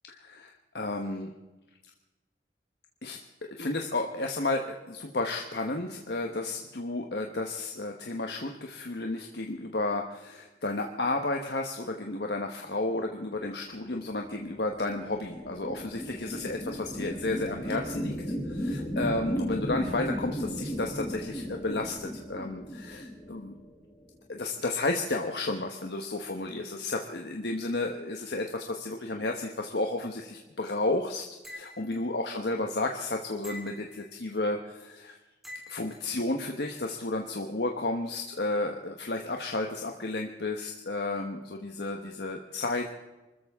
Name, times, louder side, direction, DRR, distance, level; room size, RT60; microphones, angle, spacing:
voice 1, 0.1-1.3 3.0-3.2 3.5-18.2 18.5-23.6 24.3-35.2 35.7-42.9, left 2 dB, 65° left, 3 dB, 1.2 m, -32 dB
sound 1, 14.2-23.9, equal, 15° left, 2.7 m, -35 dB
sound 2, 31.4-32.0 33.4-34.1 35.4-36.0, left 1 dB, ahead, 3.7 m, -45 dB
24.5 x 14.0 x 3.6 m, 1.1 s
head